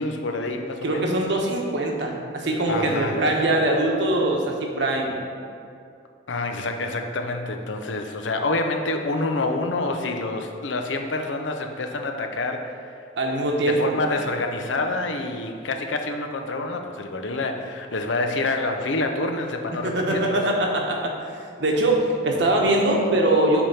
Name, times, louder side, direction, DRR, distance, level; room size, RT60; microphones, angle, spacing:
voice 1, 0.0-1.2 2.7-3.2 6.3-12.9 13.7-20.4, left 2 dB, 80° left, 5 dB, 0.7 m, -27 dB
voice 2, 0.8-5.2 13.2-13.9 19.8-21.1 21.6-23.7, right 1 dB, 70° right, 0 dB, 1.1 m, -22 dB
8.4 x 3.5 x 5.5 m, 2.5 s
head